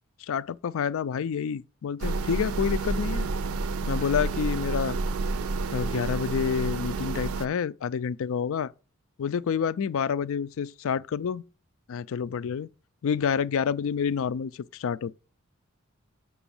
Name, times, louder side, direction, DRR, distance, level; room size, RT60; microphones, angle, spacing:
voice 1, 0.2-3.3 3.9-5.0 5.7-8.7 9.2-11.4 11.9-12.7 13.0-15.1, left 7 dB, 65° left, 0.4 m, -28 dB
sound 1, 2.0-7.5, right 3 dB, 75° right, 0.5 m, -29 dB
6.1 x 6.0 x 7.1 m
head